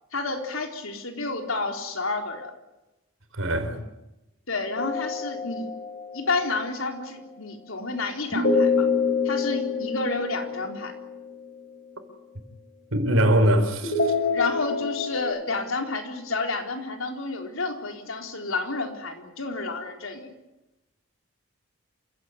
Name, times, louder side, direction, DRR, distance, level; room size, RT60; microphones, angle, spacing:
voice 1, 0.1-2.5 3.7-3.8 4.5-5.8 6.1-8.9 9.2-10.9 14.3-20.3, left 3 dB, 75° left, 4.1 m, -30 dB
voice 2, 3.3-3.8 12.9-14.1, right 1 dB, 75° right, 4.1 m, -22 dB
sound 1, 4.8-6.3 8.3-11.5 13.8-15.2, left 4 dB, 50° left, 6.2 m, -26 dB
27.5 x 16.5 x 9.7 m
head